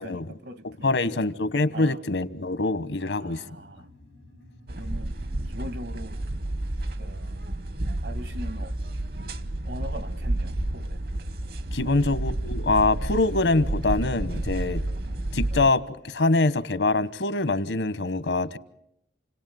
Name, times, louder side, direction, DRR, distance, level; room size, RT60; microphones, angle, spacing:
voice 1, 0.0-1.3 1.7-2.0 3.0-3.9 4.7-5.2 5.5-6.2 7.0-7.6 8.0-8.7 9.1-11.0 11.8-12.1, equal, 75° right, 1.6 m, -41 dB
voice 2, 0.6-3.4 11.7-14.8 15.3-18.6, left 2 dB, 85° left, 1.1 m, -24 dB
sound 1, 3.2-8.2 11.5-16.4, equal, 90° right, 7.7 m, -53 dB
sound 2, 4.7-15.7, right 1 dB, 55° right, 1.0 m, -30 dB
29.0 x 18.5 x 9.2 m
head